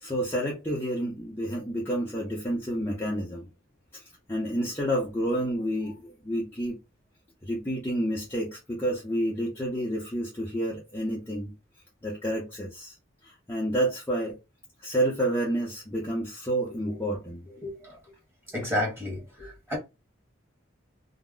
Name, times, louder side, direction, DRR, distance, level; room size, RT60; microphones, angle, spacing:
voice 1, 0.0-3.5 3.9-4.0 4.3-6.8 7.4-11.5 12.0-12.9 13.2-14.4 14.8-17.5, right 1 dB, 10° left, 0.6 m, -29 dB
voice 2, 16.7-17.1 17.4-18.1 18.5-19.8, left 1 dB, 15° right, 1.2 m, -33 dB
2.3 x 2.0 x 3.7 m
head